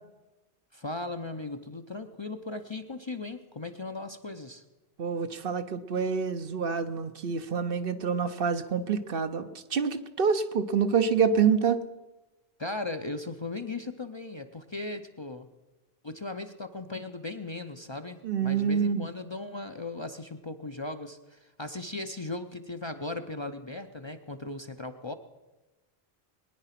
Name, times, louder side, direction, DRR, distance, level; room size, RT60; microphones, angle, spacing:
voice 1, 0.7-4.6 12.6-15.5 16.0-25.1, left 2 dB, 30° left, 7 dB, 0.6 m, -37 dB
voice 2, 5.0-11.9 18.2-19.1, right 6 dB, 60° right, 10 dB, 1.0 m, -27 dB
21.5 x 10.0 x 5.8 m, 1.1 s
omnidirectional pair, 1.1 m